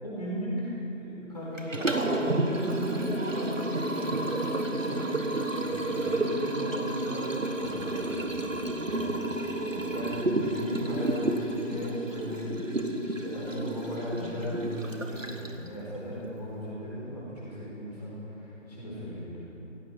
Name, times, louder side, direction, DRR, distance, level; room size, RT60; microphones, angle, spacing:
voice 1, 0.0-5.3 5.5-7.3 7.6-19.4, equal, 30° left, -7 dB, 4.2 m, -37 dB
Liquid, 1.6-15.7, right 1 dB, 80° right, 1.5 m, -30 dB
16.0 x 15.0 x 4.5 m, 3.0 s
figure-of-eight pair, 170°, 38 cm